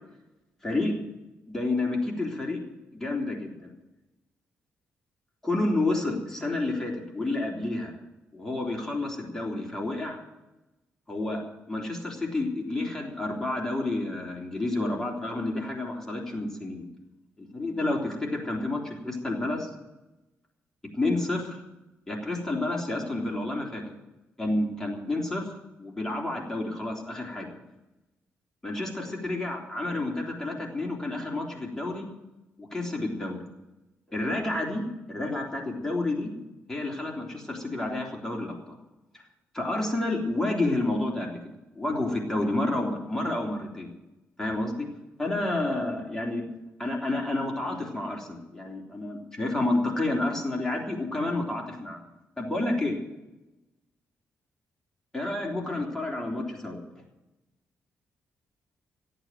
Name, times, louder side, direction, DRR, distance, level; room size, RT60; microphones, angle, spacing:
voice 1, 0.6-0.9 1.5-2.6 3.0-3.7 5.4-7.9 8.3-10.2 11.1-11.4 11.7-16.9 17.4-19.7 20.9-21.6 22.1-23.8 24.4-27.5 28.6-32.1 32.6-33.4 34.1-34.8 35.1-36.3 36.7-38.8 39.5-41.4 41.7-43.9 44.4-44.9 45.2-46.4 46.8-52.0 52.4-53.0 55.1-56.8, left 2 dB, 10° left, -2 dB, 3.4 m, -30 dB
14.0 x 9.0 x 9.3 m, 1.0 s
cardioid pair, 100°, 5 cm